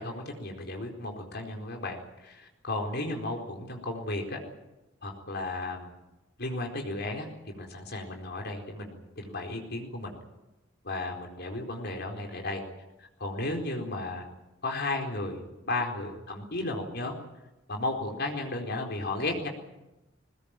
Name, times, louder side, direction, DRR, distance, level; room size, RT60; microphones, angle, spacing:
voice 1, 0.0-4.4 5.0-5.9 6.4-10.1 10.8-12.6 13.0-14.3 14.6-15.4 15.7-17.2 17.7-19.5, left 2 dB, 60° left, 2 dB, 4.3 m, -34 dB
22.0 x 20.5 x 9.1 m, 0.98 s
head